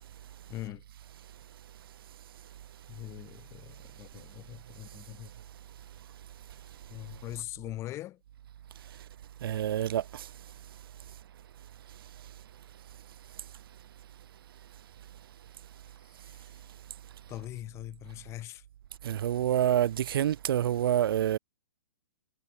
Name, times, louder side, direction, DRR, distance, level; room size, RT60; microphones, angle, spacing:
voice 1, 0.5-0.8 2.9-5.3 6.9-8.2 15.9-16.6 17.3-18.6, left 15 dB, 20° left, 1.5 m, -42 dB
voice 2, 9.4-10.3 19.0-21.4, right 11 dB, 55° right, 2.2 m, -27 dB
hypercardioid pair, 160°, 14 cm